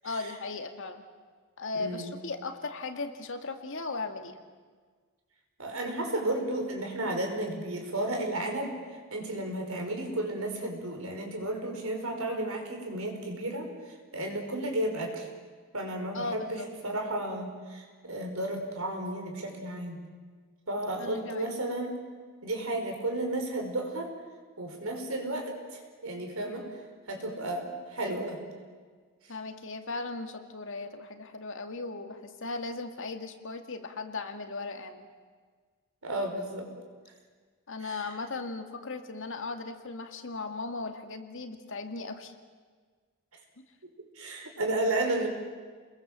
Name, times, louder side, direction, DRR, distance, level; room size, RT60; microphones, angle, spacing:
voice 1, 0.0-1.0 1.6-4.4 16.1-16.7 21.0-21.5 29.3-35.1 37.7-42.3 43.6-43.7, left 3 dB, 65° left, 6 dB, 2.1 m, -37 dB
voice 2, 1.7-2.1 5.6-8.8 9.1-13.7 14.1-15.3 15.7-20.0 20.7-22.0 22.4-24.1 24.6-26.6 27.1-28.4 36.0-36.7 37.8-38.1 44.1-45.3, right 1 dB, 70° right, 3 dB, 5.1 m, -33 dB
29.5 x 21.5 x 7.5 m, 1.5 s
head